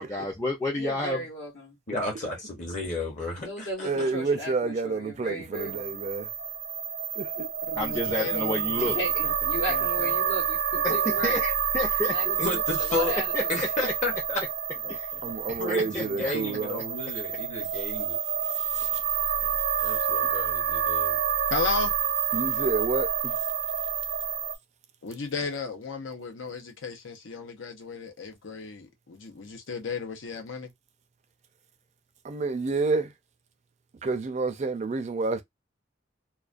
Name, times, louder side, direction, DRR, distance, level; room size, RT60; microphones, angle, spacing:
voice 1, 0.0-1.3 7.8-9.0 10.8-12.2 13.3-13.9 14.9-15.1 15.5-15.6 15.9-16.3 17.6-17.7, left 1 dB, 15° left, 0.5 m, -30 dB
voice 2, 0.7-1.8 3.4-5.9 8.8-11.4 12.1-13.6, equal, 70° left, 0.9 m, -36 dB
voice 3, 1.9-4.1 12.4-13.2 13.5-14.4 15.6-18.2 19.8-21.2, left 2 dB, 40° left, 0.8 m, -32 dB
voice 4, 3.8-6.3 7.1-7.5 15.2-16.8 18.5-19.0 19.8-20.0 22.3-23.4 32.2-33.1 34.0-35.4, right 3 dB, 35° right, 0.4 m, -29 dB
sound 1, 5.5-24.6, right 8 dB, 85° right, 0.7 m, -28 dB
voice 5, 7.7-9.3 9.7-10.1 14.8-15.3 19.4-19.5 21.5-21.9 25.0-30.7, left 4 dB, 85° left, 0.6 m, -35 dB
2.2 x 2.2 x 2.4 m
head